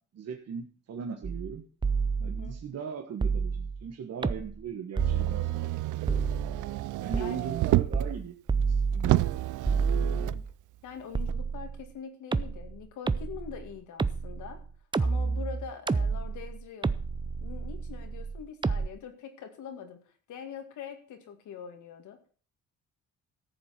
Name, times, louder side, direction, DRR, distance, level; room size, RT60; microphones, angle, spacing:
voice 1, 0.1-1.6 2.2-6.0 7.0-8.4 8.7-9.3, right 7 dB, 55° right, 3 dB, 1.5 m, -39 dB
sound 1, 1.2-1.5 1.8-2.6 3.2-3.9 4.2-4.7 5.0-5.6 6.1-6.7 7.1-7.3 7.9-8.2 8.5-9.3 9.7-10.5 11.2-11.9 12.3-18.9, right 4 dB, 15° right, 0.5 m, -30 dB
voice 2, 2.2-2.6 7.1-7.4 9.9-10.4 10.8-14.6 15.0-17.0 17.4-22.2, left 7 dB, 75° left, 6 dB, 2.3 m, -44 dB
Motor vehicle (road), 5.0-8.1 8.6-8.7 9.0-10.4 11.3-11.4, right 16 dB, 80° right, 0.5 m, -29 dB
14.0 x 7.4 x 5.9 m, 0.43 s
cardioid pair, 90°, 30 cm